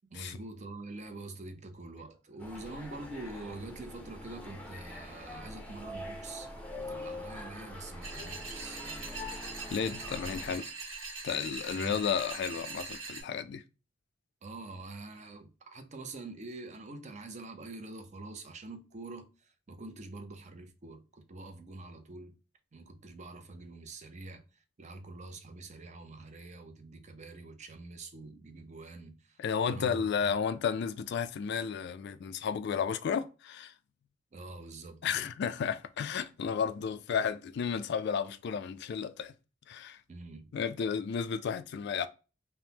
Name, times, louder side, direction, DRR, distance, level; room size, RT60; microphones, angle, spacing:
voice 1, 0.1-6.5 6.8-9.2 11.7-12.0 14.4-22.4 22.7-30.3 34.3-35.3 40.1-40.5, right 2 dB, 35° right, 0.5 m, -45 dB
sound 1, 2.4-10.6, left 1 dB, 5° left, 0.6 m, -44 dB
sound 2, 8.0-13.2, right 4 dB, 75° right, 1.4 m, -42 dB
voice 2, 9.7-10.7 11.2-13.6 29.4-33.7 35.0-39.3 39.7-40.0 40.5-42.1, left 7 dB, 60° left, 0.3 m, -33 dB
3.3 x 2.1 x 2.7 m
head